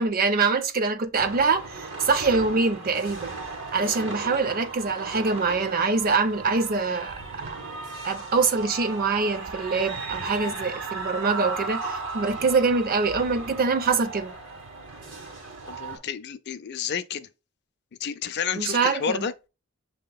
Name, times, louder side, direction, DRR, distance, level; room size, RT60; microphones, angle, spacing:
voice 1, 0.0-3.4 3.7-7.2 7.5-7.6 8.0-14.3 18.6-19.3, right 4 dB, 45° right, 0.5 m, -24 dB
sound 1, 1.2-16.0, right 3 dB, 60° right, 1.5 m, -36 dB
voice 2, 15.7-17.3 18.0-19.3, left 7 dB, 50° left, 0.4 m, -30 dB
7.4 x 2.8 x 2.2 m
head